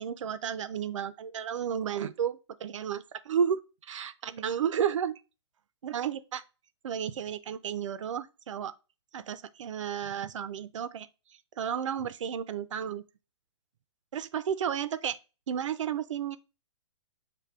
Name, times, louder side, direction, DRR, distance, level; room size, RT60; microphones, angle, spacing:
voice 1, 0.0-5.1 5.8-6.4 6.8-8.7 9.1-11.1 11.6-13.0 14.1-15.2 15.5-16.4, right 8 dB, 75° right, 0.5 m, -32 dB
6.7 x 2.7 x 2.3 m
hypercardioid pair, 145°, 16 cm